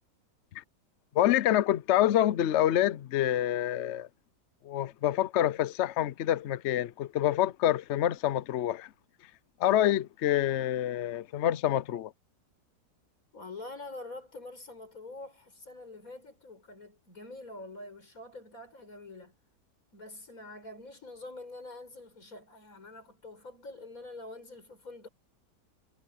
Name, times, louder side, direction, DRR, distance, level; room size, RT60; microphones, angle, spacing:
voice 1, 1.1-4.1 4.6-8.9 9.6-12.1, left 12 dB, 70° left, 0.6 m, -27 dB
voice 2, 13.3-19.4 19.9-25.1, left 2 dB, 50° left, 5.4 m, -46 dB
omnidirectional pair, 1.8 m